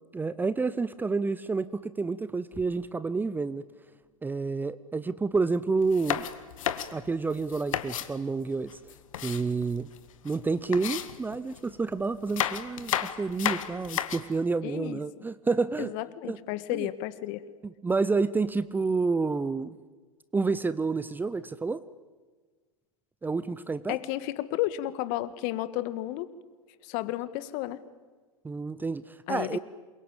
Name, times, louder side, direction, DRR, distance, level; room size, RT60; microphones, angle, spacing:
voice 1, 0.1-3.6 4.2-6.2 6.9-8.7 9.2-9.9 10.2-15.9 16.2-16.4 16.7-16.9 17.8-19.8 20.3-21.8 23.2-24.0 28.4-29.6, right 4 dB, 10° right, 16 dB, 0.8 m, -29 dB
sound 1, 5.8-8.1 8.7-10.0 10.3-10.4 10.7-11.7 12.2-14.4, left 10 dB, 65° left, 1.8 m, -32 dB
voice 2, 14.6-15.0 15.8-17.4 23.9-26.3 26.8-27.8 29.3-29.6, left 15 dB, 45° left, 14 dB, 1.7 m, -32 dB
28.0 x 23.0 x 8.9 m, 1.4 s
hypercardioid pair, 100°, 18 cm